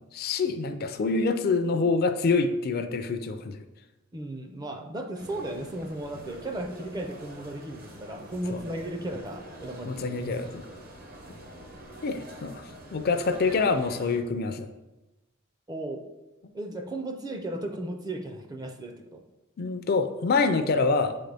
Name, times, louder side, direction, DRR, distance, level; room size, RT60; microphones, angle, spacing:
voice 1, 0.1-3.6 8.5-8.6 9.9-10.6 12.0-12.6 12.9-14.7 19.6-21.2, left 4 dB, 45° left, 8 dB, 0.4 m, -26 dB
voice 2, 4.1-10.0 15.7-16.0 16.5-19.2, right 1 dB, 20° right, 5 dB, 0.5 m, -35 dB
sound 1, 5.1-14.2, right 1 dB, 45° right, 0.9 m, -45 dB
7.7 x 3.9 x 3.4 m, 1.0 s
head